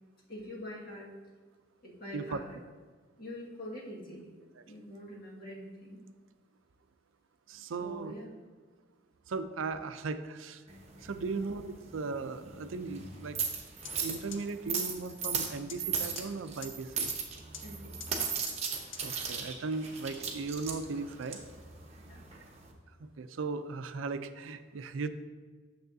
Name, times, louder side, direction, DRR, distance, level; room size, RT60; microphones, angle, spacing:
voice 1, 0.3-1.1 1.8-2.6 3.2-4.3 4.7-6.0 7.8-8.4 11.2-11.5 17.6-18.1 22.0-22.3, left 1 dB, 50° left, -5 dB, 1.8 m, -45 dB
voice 2, 7.5-8.1 9.3-10.6 11.0-11.6 11.9-13.4 14.0-17.1 19.0-21.4 23.0-25.1, right 4 dB, 90° right, 10 dB, 0.5 m, -37 dB
sound 1, 10.7-22.7, right 6 dB, 35° right, 0.9 m, -38 dB
sound 2, 13.9-14.0 14.3-14.4 14.8-14.9 15.2-15.3 15.7-15.8 16.2-16.3 16.6-16.7 17.1-17.2 17.5-17.6 18.0-18.1 18.5-18.6 18.9-19.0, left 8 dB, 70° left, 0.6 m, -42 dB
9.1 x 6.7 x 2.7 m, 1.5 s
head